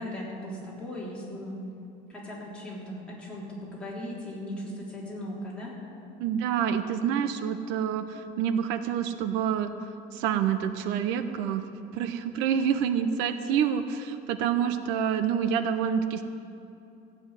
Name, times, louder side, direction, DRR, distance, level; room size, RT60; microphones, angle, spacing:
voice 1, 0.0-1.6 2.1-5.7, left 1 dB, 5° left, -7 dB, 3.6 m, -38 dB
voice 2, 6.2-9.7 10.1-11.6 11.9-16.2, right 8 dB, 90° right, 10 dB, 0.8 m, -27 dB
15.0 x 7.0 x 9.6 m, 2.8 s
cardioid pair, 155°, 18 cm